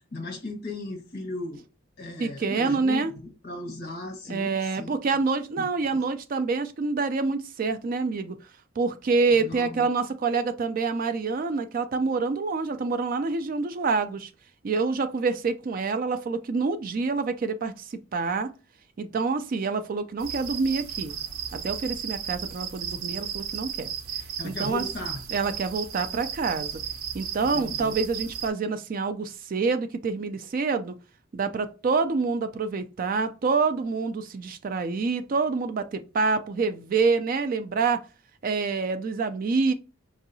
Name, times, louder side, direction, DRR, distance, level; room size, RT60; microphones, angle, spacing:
voice 1, 0.0-1.6 2.0-4.9 5.6-6.0 9.3-9.9 24.4-25.2 27.5-27.9, left 2 dB, 50° left, 1.2 m, -37 dB
voice 2, 2.2-3.1 4.3-8.4 8.8-14.3 14.6-18.5 19.0-21.1 21.5-23.9 24.4-24.8 25.3-26.8 27.1-31.0 31.3-38.0 38.4-39.7, right 4 dB, 40° right, 0.3 m, -27 dB
sound 1, 20.2-28.5, right 8 dB, 85° right, 0.6 m, -35 dB
4.9 x 2.7 x 2.6 m
head